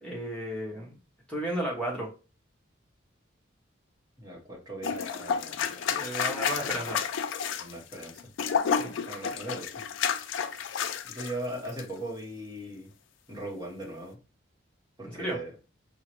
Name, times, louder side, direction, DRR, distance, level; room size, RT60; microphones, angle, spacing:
voice 1, 0.0-0.9 1.3-2.1 5.5-7.0 8.5-9.0 15.0-15.4, right 1 dB, 5° left, -4 dB, 1.1 m, -34 dB
voice 2, 4.2-5.7 6.4-7.0 7.6-8.2 9.1-9.7 11.0-12.9 13.3-14.2 15.0-15.5, right 1 dB, 20° right, -3 dB, 1.2 m, -39 dB
sound 1, 4.8-11.3 11.6-11.8, left 7 dB, 75° left, 0.3 m, -30 dB
5.4 x 2.1 x 3.0 m, 0.34 s
head